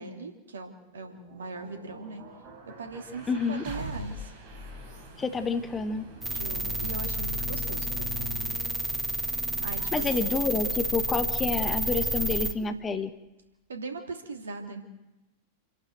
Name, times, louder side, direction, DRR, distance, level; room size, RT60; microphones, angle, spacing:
voice 1, 0.0-2.2 2.8-4.3 6.3-8.4 9.6-10.5 13.7-14.8, right 3 dB, 70° right, 4 dB, 2.9 m, -40 dB
sound 1, 0.7-12.7, right 1 dB, 40° right, 4.8 m, -46 dB
voice 2, 3.3-3.6 5.2-6.1 9.9-13.1, left 4 dB, 20° left, 9 dB, 1.4 m, -28 dB
sound 2, 6.2-12.5, right 1 dB, 5° right, 1.9 m, -30 dB
29.0 x 11.5 x 7.9 m, 1.0 s
figure-of-eight pair, 90°, 0 cm